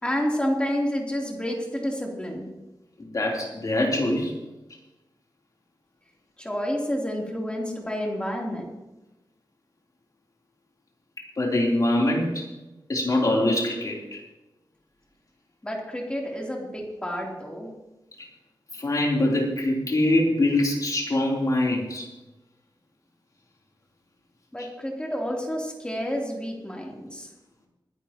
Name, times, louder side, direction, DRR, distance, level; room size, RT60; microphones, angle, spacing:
voice 1, 0.0-2.5 6.4-8.6 15.6-17.7 24.5-27.3, equal, 15° left, -2 dB, 3.3 m, -29 dB
voice 2, 3.1-4.3 11.4-12.5 12.9-14.2 18.7-22.1, left 1 dB, 45° left, -2 dB, 3.5 m, -23 dB
22.5 x 11.0 x 3.0 m, 1.0 s
wide cardioid pair, 115°, 8 cm